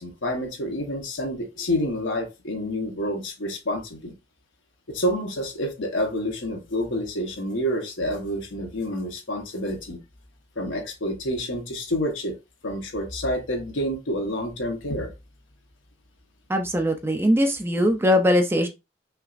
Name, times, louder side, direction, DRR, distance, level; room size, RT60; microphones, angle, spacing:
voice 1, 0.0-4.1 4.9-10.0 10.6-12.4 12.6-15.1, equal, 90° left, 0.9 m, -28 dB
voice 2, 16.5-18.7, equal, 10° right, 0.4 m, -21 dB
5.6 x 2.0 x 2.4 m
head